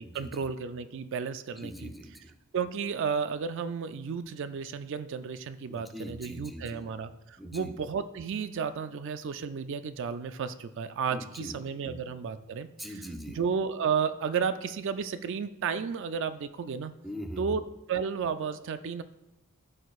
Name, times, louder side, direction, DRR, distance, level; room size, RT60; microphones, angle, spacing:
voice 1, 0.0-1.9 2.5-12.9 13.3-16.9 17.4-17.6 17.9-19.0, right 6 dB, 55° right, 11 dB, 0.3 m, -33 dB
voice 2, 1.5-2.3 5.7-6.8 7.4-7.7 11.1-11.5 11.8-12.0 12.8-13.4 17.0-17.6, equal, ahead, 3 dB, 0.6 m, -41 dB
13.0 x 6.4 x 2.4 m, 1.0 s
head